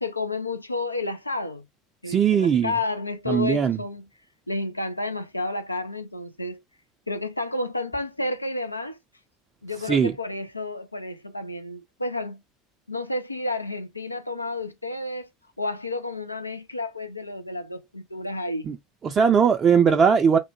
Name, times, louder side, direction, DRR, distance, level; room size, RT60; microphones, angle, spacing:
voice 1, 0.0-1.6 2.0-4.1 4.5-6.6 7.1-9.0 9.6-12.4 12.9-15.3 15.6-18.7, left 2 dB, 85° left, 0.3 m, -31 dB
voice 2, 2.1-2.7 3.3-3.8 9.8-10.1 18.7-18.8 19.0-20.4, right 7 dB, 30° right, 0.4 m, -19 dB
3.2 x 2.1 x 2.9 m
figure-of-eight pair, 75°, 0 cm